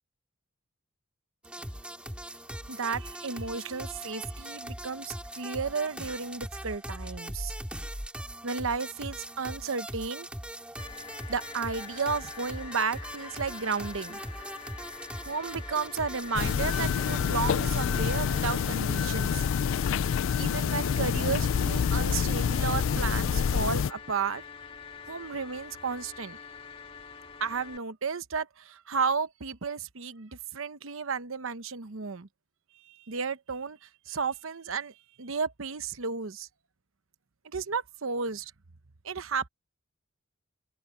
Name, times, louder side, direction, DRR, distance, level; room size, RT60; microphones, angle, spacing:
sound 1, 1.4-18.7, right 1 dB, 5° right, 3.2 m, -40 dB
voice 1, 2.7-7.5 8.4-10.3 11.3-14.2 15.3-19.4 20.4-24.4 25.1-26.4 27.4-32.3 32.8-36.5 37.4-38.5 39.0-39.5, right 5 dB, 70° right, 0.9 m, -33 dB
sound 2, 10.8-27.8, left 6 dB, 25° left, 1.8 m, -46 dB
sound 3, 16.3-23.9, left 7 dB, 65° left, 0.4 m, -27 dB
open air
head